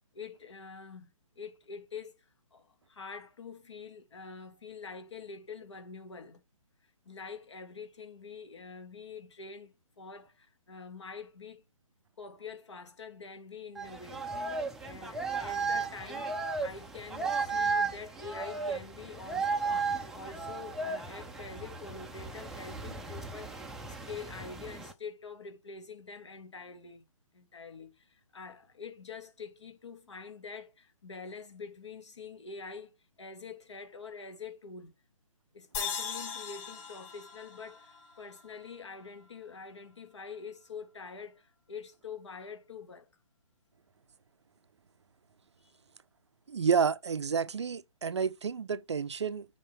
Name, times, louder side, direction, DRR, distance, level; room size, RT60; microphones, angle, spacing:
voice 1, 0.1-2.2 2.5-6.4 7.0-11.6 12.2-16.3 16.6-19.9 20.1-27.0 27.3-32.9 33.2-34.9 35.5-43.1, left 5 dB, 55° left, 2.9 m, -46 dB
sound 1, 13.8-24.9, right 4 dB, ahead, 0.6 m, -35 dB
sound 2, 35.7-39.0, left 7 dB, 25° left, 5.1 m, -40 dB
voice 2, 46.5-49.5, right 6 dB, 55° right, 0.6 m, -30 dB
8.2 x 4.4 x 4.8 m
figure-of-eight pair, 135°, 18 cm